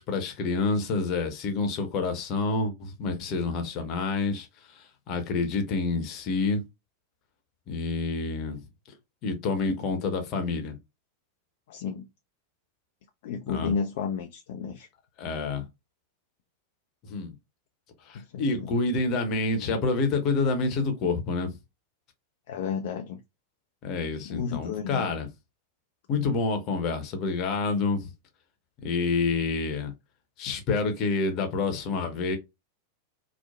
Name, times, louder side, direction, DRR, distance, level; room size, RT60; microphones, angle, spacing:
voice 1, 0.0-6.6 7.7-8.6 9.2-10.8 13.5-13.7 15.2-15.7 17.0-17.3 18.0-21.6 23.8-25.3 26.1-28.1 28.8-29.9 30.4-32.4, left 3 dB, 40° left, 0.8 m, -28 dB
voice 2, 11.7-12.1 13.2-14.9 18.1-18.7 22.5-23.2 24.2-25.1, left 6 dB, 55° left, 0.3 m, -32 dB
3.0 x 2.0 x 2.3 m
figure-of-eight pair, 90°, 0 cm